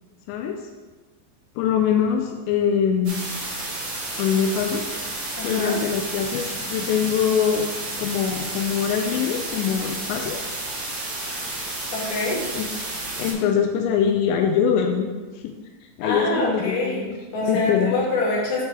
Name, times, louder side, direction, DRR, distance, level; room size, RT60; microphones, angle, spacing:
voice 1, 1.6-3.3 4.2-4.9 5.4-7.7 8.0-10.4 12.5-12.7 13.2-15.1 15.4-15.5 16.0-17.1 17.4-18.0, left 7 dB, 85° left, 4 dB, 2.4 m, -23 dB
sound 1, 3.0-13.3, right 2 dB, 55° right, 1.5 m, -31 dB
voice 2, 5.4-5.8 11.9-12.4 16.0-18.7, left 2 dB, 60° left, -5 dB, 3.2 m, -25 dB
9.4 x 3.3 x 4.6 m, 1.3 s
omnidirectional pair, 5.4 m